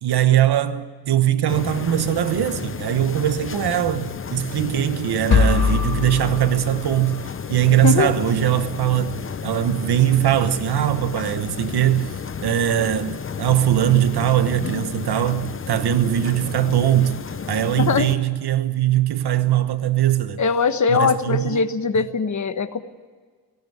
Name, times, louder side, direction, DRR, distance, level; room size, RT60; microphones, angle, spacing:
voice 1, 0.0-7.2 7.5-9.2 9.4-12.1 12.4-17.2 17.5-20.4 20.9-21.6, right 11 dB, 85° right, 1.2 m, -21 dB
sound 1, 1.5-18.1, left 6 dB, 35° left, 0.7 m, -32 dB
sound 2, 5.3-7.3, left 6 dB, 75° left, 1.4 m, -22 dB
voice 2, 7.8-8.1 17.7-18.1 20.4-22.8, left 5 dB, 50° left, 1.3 m, -21 dB
18.0 x 17.5 x 9.5 m
wide cardioid pair, 120°, 38 cm